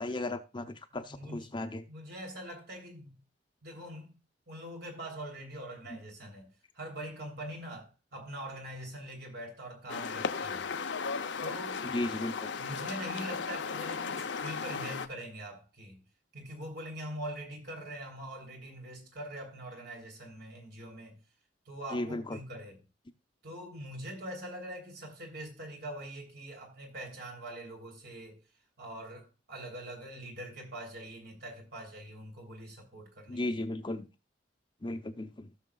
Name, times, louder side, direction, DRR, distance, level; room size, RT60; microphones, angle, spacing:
voice 1, 0.0-1.8 11.8-12.5 21.9-22.4 33.3-34.1 34.8-35.5, left 2 dB, 25° left, 0.7 m, -35 dB
voice 2, 1.0-3.2 3.6-4.2 4.5-6.5 6.7-10.7 11.4-11.9 12.6-16.0 16.3-21.2 21.7-22.8 23.4-28.4 28.8-33.6, right 1 dB, 65° right, 3.4 m, -43 dB
sound 1, 9.9-15.1, left 5 dB, 85° left, 0.7 m, -36 dB
16.5 x 6.5 x 2.4 m
head